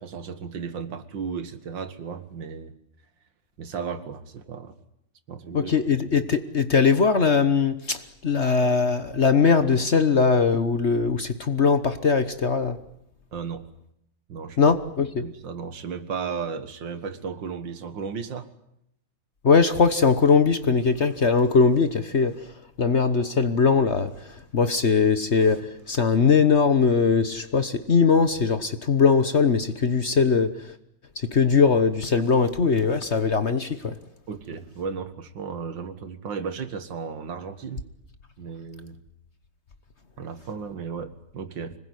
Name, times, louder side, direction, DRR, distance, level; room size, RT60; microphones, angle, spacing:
voice 1, 0.0-2.7 3.6-4.7 5.3-5.7 13.3-13.7 14.3-14.6 15.2-18.5 34.3-37.8 38.4-39.0 40.2-41.8, right 6 dB, 75° right, 11 dB, 2.3 m, -34 dB
voice 2, 5.5-12.8 14.6-15.3 19.4-22.5 22.8-30.5 31.2-34.0, left 5 dB, 40° left, 11 dB, 1.2 m, -21 dB
26.0 x 20.5 x 9.7 m, 0.75 s
omnidirectional pair, 2.0 m